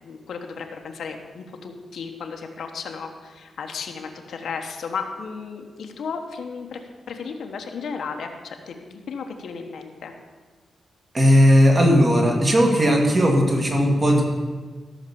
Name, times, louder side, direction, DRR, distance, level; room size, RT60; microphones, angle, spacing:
voice 1, 0.0-6.8 7.1-10.1, left 5 dB, 70° left, 4 dB, 1.2 m, -34 dB
voice 2, 11.1-14.2, equal, 25° right, 1 dB, 1.9 m, -17 dB
14.0 x 6.4 x 7.1 m, 1.4 s
wide cardioid pair, 180°, 0 cm